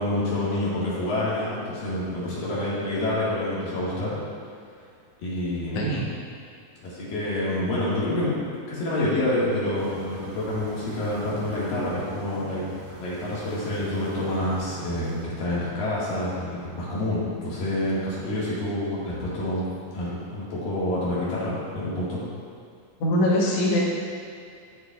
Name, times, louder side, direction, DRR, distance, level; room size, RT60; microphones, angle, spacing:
voice 1, 0.0-4.2 5.2-5.9 6.8-8.3 8.7-19.6 19.9-22.2, left 1 dB, 85° left, -8 dB, 3.6 m, -27 dB
voice 2, 5.7-6.1 23.0-23.8, left 1 dB, 60° left, -4 dB, 1.9 m, -22 dB
sound 1, 9.7-15.2, right 1 dB, 70° right, 1.2 m, -44 dB
13.0 x 4.9 x 2.4 m, 2.3 s
omnidirectional pair, 3.9 m